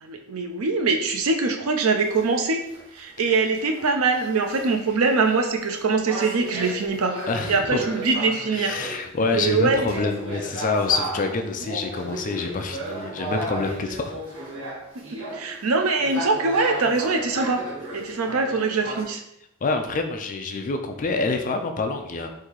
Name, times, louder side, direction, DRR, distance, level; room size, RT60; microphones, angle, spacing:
voice 1, 0.0-2.6 2.9-7.2 7.5-8.8 9.2-9.9 15.0-17.6 17.9-19.2, right 4 dB, 90° right, 5 dB, 0.6 m, -23 dB
sound 1, 2.0-19.0, right 1 dB, 70° right, 1.3 m, -35 dB
voice 2, 7.3-7.8 8.5-14.1 19.6-22.3, left 3 dB, 40° left, 5 dB, 0.4 m, -26 dB
3.8 x 2.7 x 4.6 m, 0.81 s
head